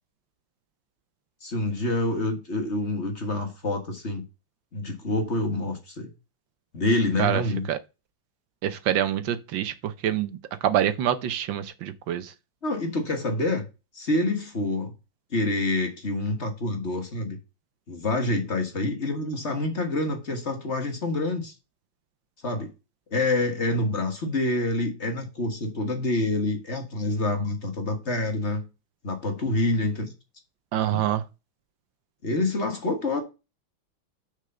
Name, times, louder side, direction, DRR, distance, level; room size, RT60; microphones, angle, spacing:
voice 1, 1.4-4.2 4.7-6.1 6.7-7.7 12.6-13.7 13.9-14.9 15.3-17.4 17.9-21.5 22.4-22.7 23.1-28.7 29.0-30.1 30.9-31.0 32.2-33.2, left 2 dB, 35° left, 1.7 m, -27 dB
voice 2, 8.6-12.3 30.7-31.2, right 11 dB, 70° right, 1.4 m, -26 dB
6.4 x 5.1 x 6.8 m
omnidirectional pair, 2.2 m